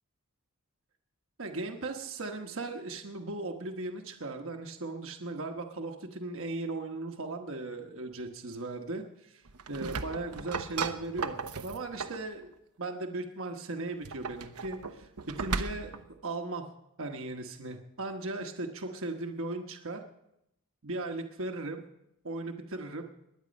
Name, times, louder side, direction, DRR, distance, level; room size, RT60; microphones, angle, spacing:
voice 1, 1.4-9.4 9.7-11.4 11.6-12.5 12.8-15.1 15.4-15.9 16.2-16.6 17.0-20.0 20.8-21.8 22.2-23.0, right 2 dB, 60° right, 4 dB, 1.2 m, -37 dB
sound 1, 9.5-12.3 13.9-16.1, right 4 dB, 85° right, 0.9 m, -36 dB
21.0 x 9.6 x 5.3 m, 0.82 s
head